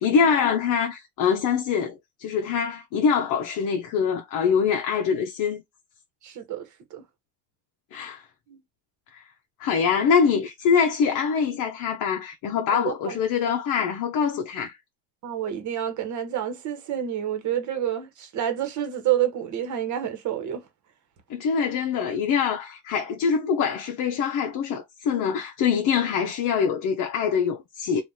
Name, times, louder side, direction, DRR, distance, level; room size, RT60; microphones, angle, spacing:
voice 1, 0.0-5.6 7.9-8.2 9.1-9.2 9.6-14.7 21.3-28.0, left 6 dB, 55° left, 0.7 m, -24 dB
voice 2, 6.2-7.0 8.5-8.6 12.7-13.2 15.2-20.7, right 10 dB, 50° right, 1.2 m, -28 dB
2.9 x 2.5 x 3.8 m
cardioid pair, 140°, 38 cm